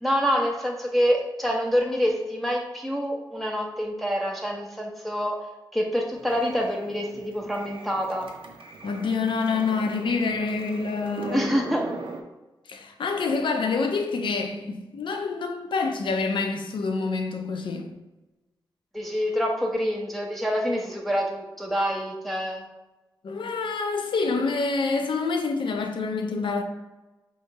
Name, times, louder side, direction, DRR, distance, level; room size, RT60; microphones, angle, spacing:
voice 1, 0.0-5.5 5.7-8.3 11.3-11.9 18.9-22.6, equal, ahead, 0.5 m, -26 dB
sound 1, 6.1-12.2, right 3 dB, 85° right, 0.5 m, -40 dB
voice 2, 8.8-11.5 12.7-17.9 23.2-26.6, left 4 dB, 75° left, 0.5 m, -27 dB
3.0 x 2.7 x 4.4 m
wide cardioid pair, 90°, 9 cm